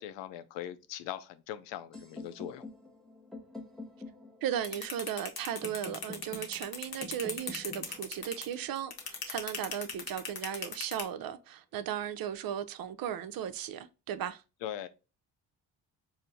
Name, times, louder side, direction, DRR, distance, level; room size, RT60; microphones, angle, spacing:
voice 1, 0.0-2.7 14.6-14.9, left 11 dB, 70° left, 0.5 m, -40 dB
sound 1, 1.9-9.9, left 2 dB, ahead, 0.6 m, -49 dB
voice 2, 4.4-14.4, right 10 dB, 50° right, 0.5 m, -36 dB
sound 2, 4.6-11.0, left 6 dB, 50° left, 0.9 m, -38 dB
4.3 x 2.0 x 2.6 m
supercardioid pair, 60°, 46 cm